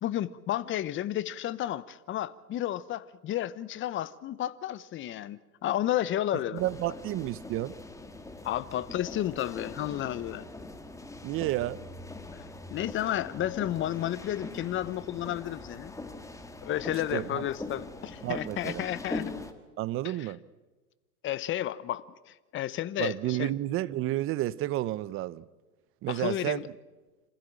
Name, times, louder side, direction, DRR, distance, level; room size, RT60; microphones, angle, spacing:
voice 1, 0.0-6.6 8.4-10.5 12.7-15.9 16.6-19.3 20.0-20.3 21.2-23.5 26.1-26.7, left 12 dB, 25° left, 0.9 m, -32 dB
voice 2, 6.5-7.8 11.2-11.8 17.1-17.5 18.2-18.8 19.8-20.4 23.0-25.4 26.0-26.6, right 15 dB, 30° right, 0.7 m, -31 dB
sound 1, 6.6-19.5, left 2 dB, 5° left, 1.8 m, -42 dB
27.0 x 15.5 x 8.8 m
hypercardioid pair, 110°, 46 cm